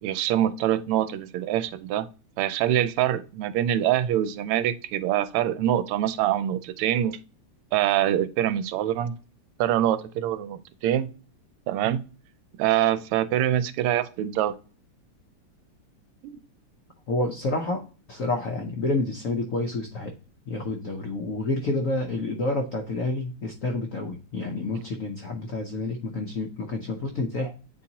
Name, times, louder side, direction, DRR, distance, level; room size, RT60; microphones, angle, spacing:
voice 1, 0.0-2.1 2.4-7.2 7.7-9.1 9.6-11.1 11.7-12.1 12.6-14.5 16.2-16.4, right 11 dB, 85° right, 13 dB, 1.5 m, -24 dB
voice 2, 17.1-20.1 20.5-27.5, left 2 dB, 80° left, 3 dB, 0.7 m, -29 dB
8.6 x 3.9 x 2.8 m, 0.36 s
omnidirectional pair, 2.4 m